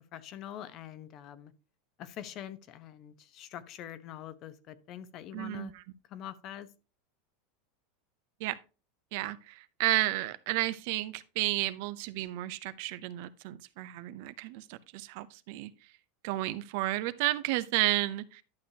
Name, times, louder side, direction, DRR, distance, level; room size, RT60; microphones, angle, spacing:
voice 1, 0.1-1.5 2.0-5.7 6.1-6.7, left 11 dB, 40° left, 0.9 m, -44 dB
voice 2, 5.3-5.8 8.4-8.6 9.1-15.7 16.2-18.4, right 17 dB, 60° right, 0.7 m, -32 dB
11.5 x 6.4 x 2.8 m
supercardioid pair, 150°, 0 cm